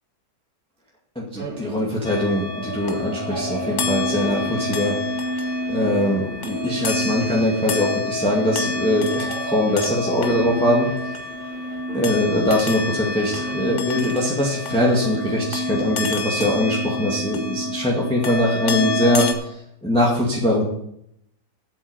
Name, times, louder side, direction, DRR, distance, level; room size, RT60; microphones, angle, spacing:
voice 1, 1.2-5.0 5.7-10.9 11.9-20.6, left 1 dB, 5° left, -4 dB, 2.0 m, -22 dB
sound 1, 1.4-13.8, right 3 dB, 30° right, 1.7 m, -37 dB
sound 2, 2.0-19.3, left 2 dB, 45° left, 1.4 m, -28 dB
8.3 x 8.2 x 8.1 m, 0.76 s
omnidirectional pair, 1.9 m